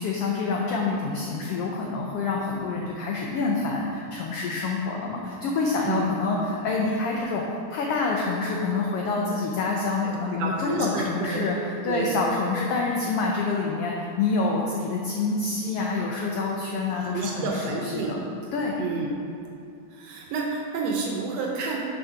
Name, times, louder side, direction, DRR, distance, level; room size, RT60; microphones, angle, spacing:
voice 1, 0.0-18.2 18.5-18.7, left 3 dB, 90° left, -1 dB, 1.3 m, -27 dB
voice 2, 10.4-11.5 11.9-12.2 17.1-18.2 18.8-19.1 19.9-21.8, right 4 dB, 70° right, -1 dB, 1.7 m, -29 dB
6.5 x 4.6 x 5.7 m, 2.6 s
omnidirectional pair, 3.4 m